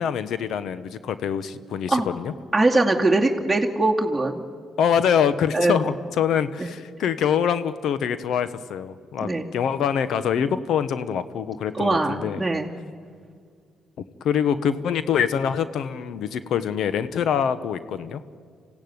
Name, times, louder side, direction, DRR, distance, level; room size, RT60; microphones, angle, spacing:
voice 1, 0.0-2.3 4.8-12.4 14.2-18.2, left 8 dB, 75° left, 13 dB, 1.2 m, -24 dB
voice 2, 2.5-4.4 5.5-5.8 6.6-6.7 9.2-9.5 11.8-12.7, right 2 dB, 5° right, -2 dB, 2.5 m, -21 dB
26.5 x 16.5 x 9.6 m, 2.1 s
cardioid pair, 90°, 0 cm